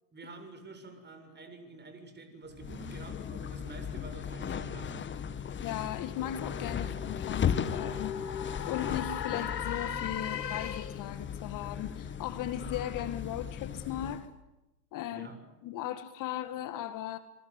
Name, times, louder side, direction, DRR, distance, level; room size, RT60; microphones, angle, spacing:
voice 1, 0.1-5.0 15.1-15.4, right 3 dB, 20° right, 7 dB, 7.1 m, -48 dB
sound 1, 2.5-14.3, left 8 dB, 25° left, 1.8 m, -37 dB
sound 2, 5.2-11.2, left 8 dB, 90° left, 1.4 m, -39 dB
voice 2, 5.6-8.1 8.7-14.3 14.9-17.2, left 11 dB, 40° left, 11 dB, 1.9 m, -37 dB
26.0 x 25.0 x 8.3 m, 0.99 s
hypercardioid pair, 95°, 48 cm